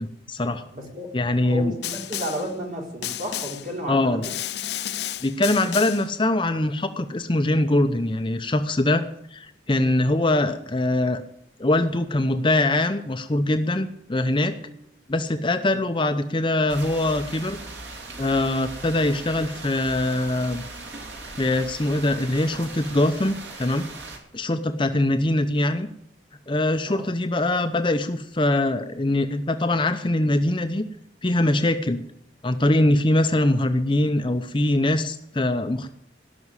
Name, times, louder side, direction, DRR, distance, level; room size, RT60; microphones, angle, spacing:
voice 1, 0.0-0.6 1.1-1.7 3.9-4.2 5.2-9.0 9.3-11.2 11.6-14.6 15.1-17.6 18.2-20.6 21.4-23.8 24.3-25.9 26.5-30.8 31.2-32.0 32.4-35.9, left 1 dB, 25° left, 8 dB, 0.7 m, -23 dB
voice 2, 0.7-1.1 1.4-4.3 14.6-14.7 15.7-15.8 26.9-27.1, equal, 45° right, -1 dB, 4.2 m, -33 dB
Snare drum, 1.8-2.5 3.0-3.7 4.2-6.1, left 12 dB, 65° left, 0.6 m, -32 dB
sound 1, 16.7-24.2, right 3 dB, 70° right, 3.0 m, -39 dB
17.5 x 6.1 x 9.7 m, 0.72 s
head